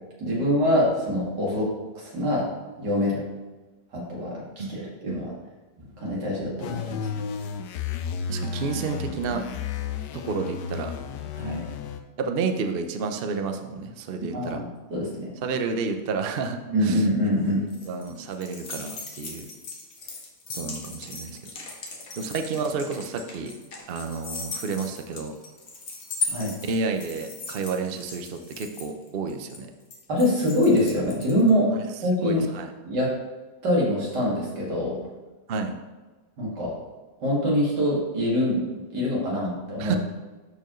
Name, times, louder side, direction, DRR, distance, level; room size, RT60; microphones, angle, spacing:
voice 1, 0.2-2.5 2.8-3.2 3.9-5.3 6.0-7.1 11.3-11.6 14.3-15.3 16.6-17.6 26.3-26.5 30.1-31.7 32.0-32.5 32.8-33.1 33.6-35.0 36.4-36.7 37.2-40.0, left 1 dB, 80° right, -4 dB, 2.7 m, -24 dB
voice 2, 4.6-5.2 8.3-9.4 10.1-10.9 12.2-14.6 15.4-17.0 17.9-19.5 20.5-21.4 22.2-23.5 23.9-25.3 26.7-29.7 31.7-31.8 32.2-32.7 35.5-35.8 39.8-40.0, right 4 dB, 65° right, 6 dB, 0.5 m, -30 dB
sound 1, 6.6-12.0, left 6 dB, 85° left, 1.2 m, -32 dB
sound 2, 17.2-31.5, left 4 dB, 60° left, 1.6 m, -38 dB
11.5 x 4.5 x 3.1 m, 1.2 s
omnidirectional pair, 1.8 m